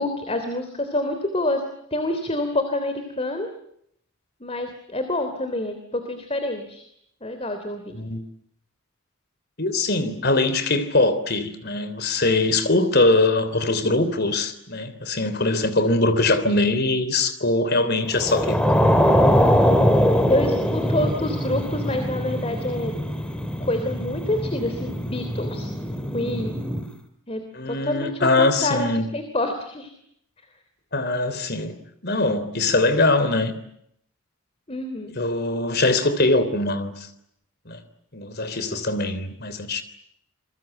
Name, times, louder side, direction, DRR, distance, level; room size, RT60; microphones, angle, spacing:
voice 1, 0.0-1.6 1.9-3.5 4.4-6.9 7.2-8.0 20.3-22.9 23.6-25.7 26.1-26.5 27.3-29.9 34.7-35.1, left 1 dB, 30° left, 3.1 m, -27 dB
voice 2, 9.6-18.8 27.5-29.1 30.9-31.8 32.0-33.5 35.1-37.1 37.6-37.8 38.1-39.8, left 2 dB, 50° left, 3.4 m, -22 dB
sound 1, 18.1-26.9, equal, 5° left, 2.7 m, -22 dB
28.5 x 23.0 x 9.1 m
head